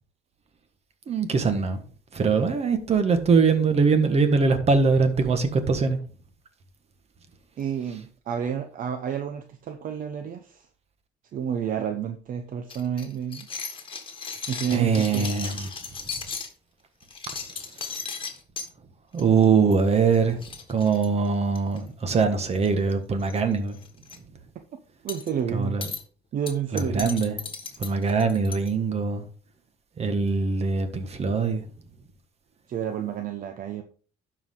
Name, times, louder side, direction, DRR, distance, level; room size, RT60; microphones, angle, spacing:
voice 1, 1.1-1.8 2.1-6.0 7.9-8.0 14.7-15.7 19.1-20.4 20.7-23.8 25.5-25.9 26.7-27.4 27.8-29.2 30.0-31.6, right 5 dB, 40° right, 1.5 m, -22 dB
voice 2, 7.6-10.7 11.3-13.5 14.5-15.3 25.0-25.8 26.3-27.2 32.7-33.8, right 8 dB, 55° right, 0.8 m, -30 dB
sound 1, 12.7-16.5 17.0-18.7 19.2-19.4 19.7-19.8 20.1-20.2 20.4-21.8 22.5-22.9 23.2-23.4 23.7-24.2 25.1-25.3 25.8-26.0 26.5-28.7, left 5 dB, 30° left, 1.7 m, -36 dB
12.0 x 4.9 x 3.8 m
cardioid pair, 110°, 17 cm